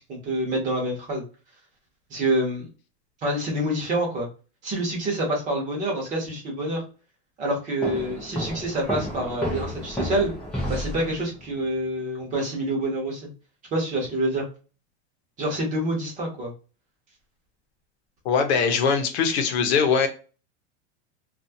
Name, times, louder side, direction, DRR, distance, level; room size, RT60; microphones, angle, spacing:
voice 1, 0.1-1.2 2.1-2.7 3.2-4.3 4.6-6.8 7.4-10.3 10.7-13.3 13.7-14.4 15.4-16.5, right 1 dB, 20° right, 0.9 m, -27 dB
sound 1, 7.8-11.5, left 1 dB, 5° left, 0.4 m, -31 dB
voice 2, 18.2-20.1, left 6 dB, 70° left, 0.8 m, -21 dB
2.6 x 2.4 x 2.7 m
supercardioid pair, 170°, 34 cm